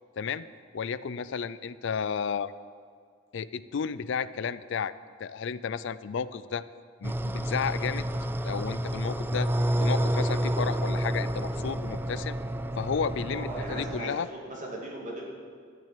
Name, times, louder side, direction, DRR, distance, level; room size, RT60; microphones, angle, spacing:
voice 1, 0.7-2.5 3.3-4.9 5.2-6.6 7.0-8.0 8.4-9.5 9.8-12.4 12.8-14.3, left 6 dB, 65° left, 16 dB, 0.4 m, -32 dB
sound 1, 7.0-14.0, right 1 dB, 10° right, 0.3 m, -29 dB
voice 2, 13.3-15.2, right 1 dB, 40° right, -2 dB, 2.4 m, -38 dB
12.0 x 6.3 x 8.3 m, 2.1 s
head